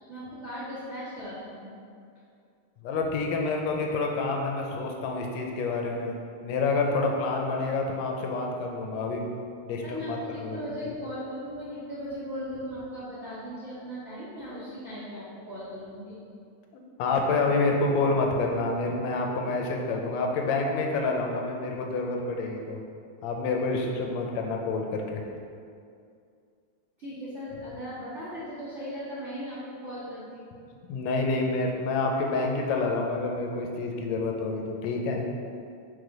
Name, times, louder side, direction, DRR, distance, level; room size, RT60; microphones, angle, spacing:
voice 1, 0.0-1.7 9.8-16.2 27.0-30.4, equal, 65° right, -12 dB, 0.6 m, -38 dB
voice 2, 2.8-6.1 6.4-9.3 9.6-10.6 17.0-22.8 23.2-25.2 30.9-35.3, left 3 dB, 75° left, 1 dB, 1.7 m, -28 dB
4.9 x 4.1 x 5.1 m, 2.4 s
omnidirectional pair, 3.5 m